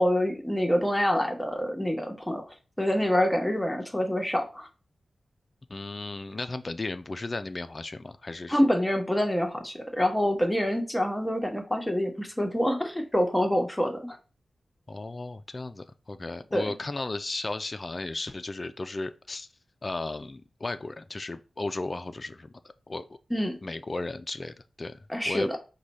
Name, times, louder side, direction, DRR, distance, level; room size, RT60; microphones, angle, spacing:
voice 1, 0.0-2.4 2.8-4.7 8.5-14.2 16.5-16.6 23.3-23.5 25.1-25.6, equal, 10° left, 1.0 m, -26 dB
voice 2, 5.7-8.6 14.9-19.5 19.8-22.5 22.9-23.0 23.6-25.0 25.2-25.6, left 2 dB, 40° left, 0.4 m, -35 dB
4.8 x 2.3 x 4.1 m
cardioid pair, 50°, 0 cm